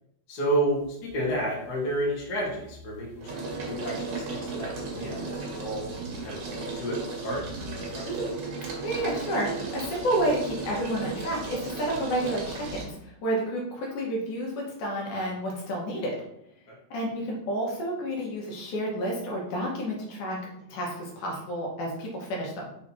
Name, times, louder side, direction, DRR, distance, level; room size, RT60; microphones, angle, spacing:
voice 1, 0.3-5.9 6.2-8.3, right 1 dB, 35° left, -5 dB, 1.8 m, -31 dB
sound 1, 0.8-1.3 1.7-12.9, right 3 dB, 60° right, 2.4 m, -36 dB
voice 2, 8.8-9.5 9.7-16.2 16.9-20.4 20.7-22.7, right 1 dB, 70° left, -2 dB, 2.5 m, -30 dB
5.8 x 3.8 x 4.3 m, 0.78 s
omnidirectional pair, 3.7 m